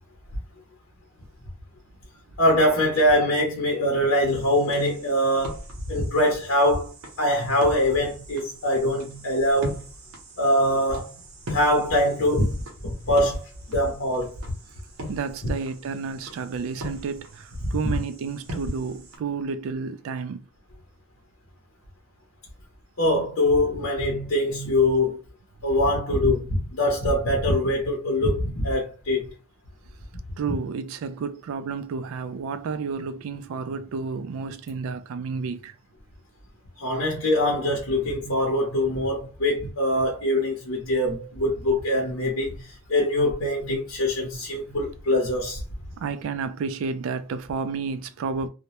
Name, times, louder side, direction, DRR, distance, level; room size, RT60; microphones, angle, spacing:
voice 1, 2.4-9.8 10.4-11.2 11.5-12.5 12.8-14.3 17.7-17.9 23.0-25.2 25.6-29.3 36.8-45.6, left 1 dB, 75° left, 0.7 m, -23 dB
sound 1, 4.3-19.2, equal, 85° right, 0.8 m, -41 dB
voice 2, 15.1-20.5 30.4-35.7 46.0-48.5, right 5 dB, 70° right, 0.3 m, -31 dB
2.2 x 2.0 x 2.8 m
head